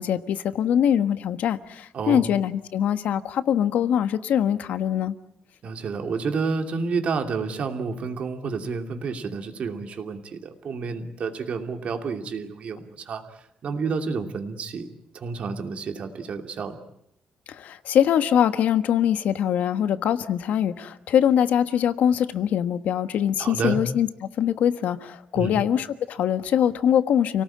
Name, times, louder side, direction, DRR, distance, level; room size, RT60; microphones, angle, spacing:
voice 1, 0.0-5.1 17.5-24.1 24.4-27.4, left 9 dB, 80° left, 11 dB, 1.3 m, -23 dB
voice 2, 1.9-2.3 5.6-14.9 15.1-16.8 23.4-23.8 25.3-25.6, right 4 dB, 55° right, 5 dB, 2.7 m, -30 dB
29.5 x 18.0 x 8.7 m, 0.78 s
cardioid pair, 145°, 3 cm